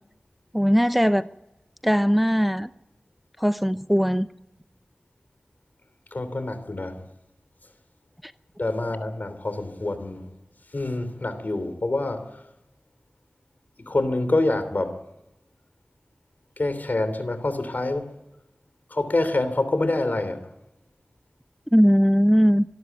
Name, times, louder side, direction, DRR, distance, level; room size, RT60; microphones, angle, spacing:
voice 1, 0.5-1.3 1.8-2.7 3.4-4.3 21.7-22.6, equal, 5° right, 0.7 m, -19 dB
voice 2, 6.1-7.0 8.6-10.2 10.7-12.2 13.8-14.9 16.6-18.1 18.9-20.4, left 2 dB, 70° left, 3.2 m, -26 dB
25.0 x 12.5 x 9.2 m
wide cardioid pair, 40°, 3 cm